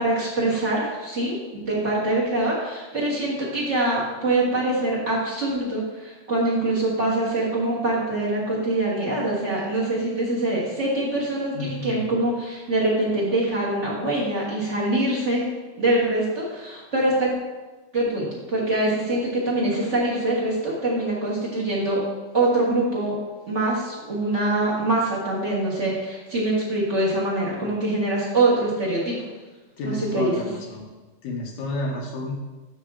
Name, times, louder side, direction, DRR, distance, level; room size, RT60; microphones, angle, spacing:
voice 1, 0.0-15.5 15.8-17.3 17.9-22.0 22.3-23.2 23.5-29.3 29.8-30.3, right 2 dB, 35° right, -7 dB, 1.1 m, -24 dB
voice 2, 11.5-12.1 27.6-27.8 29.8-30.8 31.2-32.3, left 2 dB, 70° left, 0 dB, 2.0 m, -31 dB
8.3 x 5.9 x 3.7 m, 1.2 s
omnidirectional pair, 3.7 m